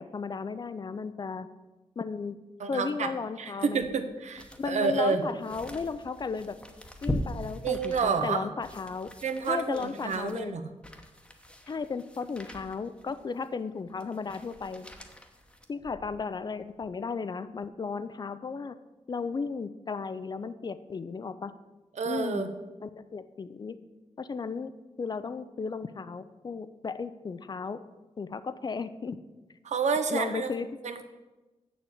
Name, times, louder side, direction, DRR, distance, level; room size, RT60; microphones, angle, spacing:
voice 1, 0.0-1.5 2.0-2.4 2.7-3.8 4.6-6.6 7.0-9.1 9.5-10.5 11.7-14.9 15.7-18.8 19.1-21.5 22.0-22.5 22.8-23.8 24.2-24.7 25.0-27.8 28.2-29.2 30.1-30.7, left 5 dB, 35° left, 13 dB, 0.4 m, -35 dB
voice 2, 2.6-3.1 3.4-5.2 7.6-8.5 9.2-10.7 22.0-22.5 29.6-30.5 30.8-31.0, right 5 dB, 80° right, 9 dB, 0.9 m, -29 dB
sound 1, 3.6-16.3 16.7-16.9, equal, 10° left, 0.9 m, -41 dB
7.3 x 7.1 x 7.8 m, 1.1 s
wide cardioid pair, 165°, 12 cm